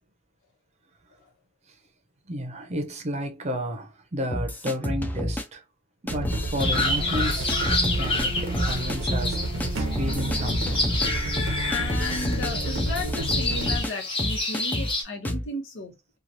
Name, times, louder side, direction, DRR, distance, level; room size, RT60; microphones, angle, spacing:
voice 1, 2.3-5.6 6.0-10.8, equal, 35° right, 0.6 m, -32 dB
sound 1, 4.3-5.4 6.1-6.9 7.1-8.3 8.5-9.3 9.6-9.7 9.9-13.9 14.2-14.9 15.2-15.5, left 1 dB, 10° left, 0.3 m, -29 dB
sound 2, 6.1-13.8, right 1 dB, 90° right, 0.7 m, -30 dB
sound 3, 6.6-15.0, left 2 dB, 30° left, 0.9 m, -29 dB
voice 2, 11.7-16.2, left 2 dB, 85° left, 1.0 m, -34 dB
3.0 x 2.3 x 2.6 m
head